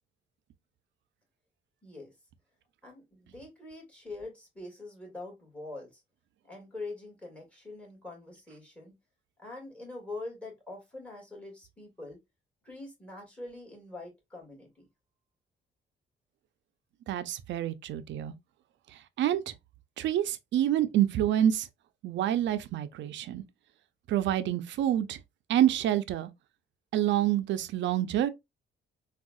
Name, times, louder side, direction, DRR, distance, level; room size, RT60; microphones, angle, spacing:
voice 1, 2.8-6.0 6.4-8.9 9.4-12.2 12.6-14.9, left 2 dB, 5° left, 2.0 m, -44 dB
voice 2, 17.1-18.3 19.2-19.5 20.0-21.7 22.0-23.4 24.1-25.2 25.5-26.3 26.9-28.3, right 11 dB, 65° right, 0.4 m, -27 dB
3.5 x 2.3 x 2.3 m
cardioid pair, 90°, 20 cm